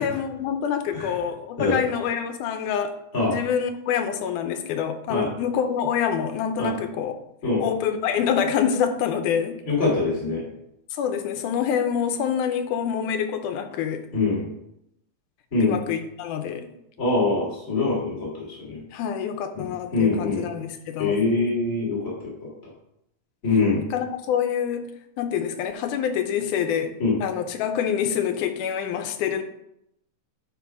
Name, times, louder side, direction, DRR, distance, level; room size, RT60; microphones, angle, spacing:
voice 1, 0.0-2.9 3.3-7.1 7.6-9.6 10.9-14.1 15.6-16.7 18.9-21.3 23.9-24.9 25.2-26.9 27.2-29.4, left 8 dB, 80° left, 8 dB, 2.2 m, -26 dB
voice 2, 9.7-10.4 14.1-14.5 15.5-15.7 17.0-18.8 19.6-20.5 21.0-22.3 23.4-23.8 27.0-27.2, left 3 dB, 25° left, -4 dB, 2.9 m, -23 dB
9.9 x 3.7 x 4.8 m, 0.80 s
omnidirectional pair, 3.6 m